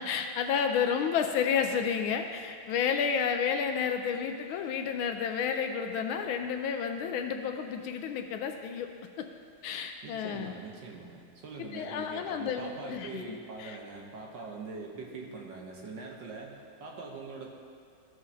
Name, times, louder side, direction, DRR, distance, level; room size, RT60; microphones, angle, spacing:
voice 1, 0.0-8.9 9.2-9.3 9.6-10.5 11.6-13.8, left 7 dB, 75° left, 5 dB, 1.3 m, -31 dB
voice 2, 10.0-17.5, right 4 dB, 65° right, -1 dB, 1.5 m, -43 dB
15.0 x 6.4 x 2.7 m, 2.3 s
omnidirectional pair, 2.4 m